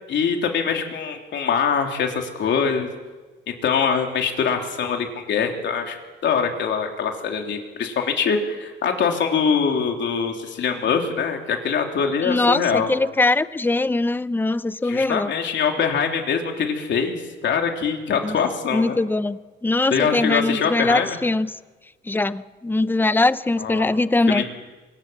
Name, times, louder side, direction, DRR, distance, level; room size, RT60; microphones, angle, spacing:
voice 1, 0.1-2.9 3.6-6.0 6.2-12.9 14.8-19.0 19.9-21.2 23.6-23.9 24.3-24.4, left 6 dB, 65° left, 3 dB, 3.4 m, -23 dB
voice 2, 12.2-15.3 18.2-18.4 18.7-21.5 22.1-24.4, left 2 dB, 10° left, 15 dB, 0.7 m, -21 dB
24.0 x 19.0 x 7.5 m, 1.3 s
cardioid pair, 90°, 20 cm